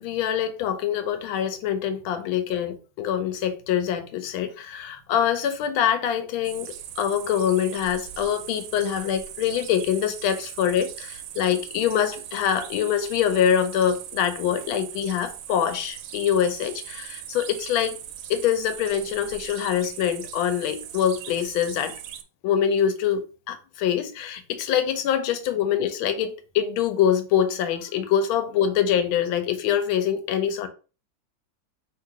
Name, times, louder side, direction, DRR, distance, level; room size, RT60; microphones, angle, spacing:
voice 1, 0.0-18.0 18.3-22.0 22.4-30.7, left 9 dB, 80° left, 1.4 m, -24 dB
sound 1, 6.4-22.2, right 10 dB, 80° right, 1.3 m, -40 dB
3.2 x 2.9 x 4.6 m
omnidirectional pair, 2.3 m